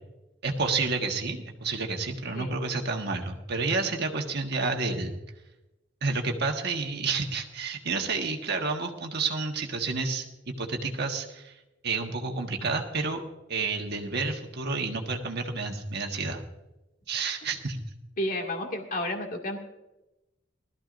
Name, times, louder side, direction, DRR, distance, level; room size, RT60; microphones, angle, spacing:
voice 1, 0.4-5.2 6.0-11.5 11.8-13.2 13.5-16.4 17.1-17.8, right 4 dB, 55° right, 3 dB, 1.4 m, -30 dB
voice 2, 18.2-19.6, left 1 dB, 45° left, 2 dB, 2.2 m, -31 dB
20.0 x 13.5 x 2.6 m, 0.98 s
head